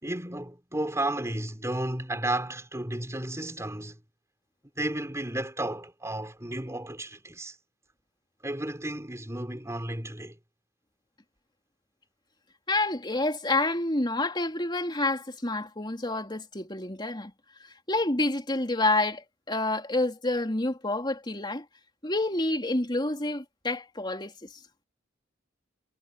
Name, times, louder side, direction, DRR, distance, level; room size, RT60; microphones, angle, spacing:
voice 1, 0.0-4.0 4.8-7.6 8.4-10.4, right 1 dB, 15° right, 4.1 m, -33 dB
voice 2, 12.7-17.3 17.9-21.6 22.0-24.5, left 2 dB, 25° left, 3.4 m, -28 dB
head